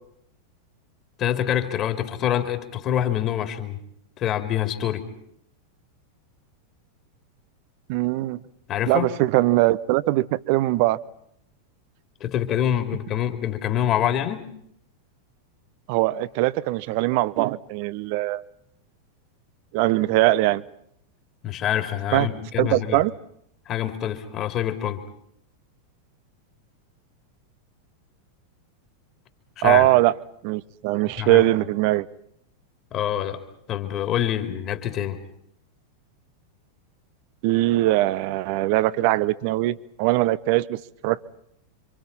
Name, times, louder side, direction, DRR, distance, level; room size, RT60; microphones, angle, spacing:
voice 1, 1.2-3.8 4.2-5.1 8.7-9.1 12.2-14.5 21.4-23.0 23.7-25.0 29.6-29.9 31.2-31.4 32.9-33.4 33.7-35.2, left 10 dB, 35° left, 3.1 m, -25 dB
voice 2, 7.9-8.4 8.9-11.0 15.9-18.4 19.7-20.6 22.1-22.3 22.6-23.1 29.6-30.1 30.4-32.1 37.4-41.2, right 17 dB, 45° right, 1.0 m, -21 dB
29.0 x 26.0 x 5.7 m
figure-of-eight pair, 90°, 0 cm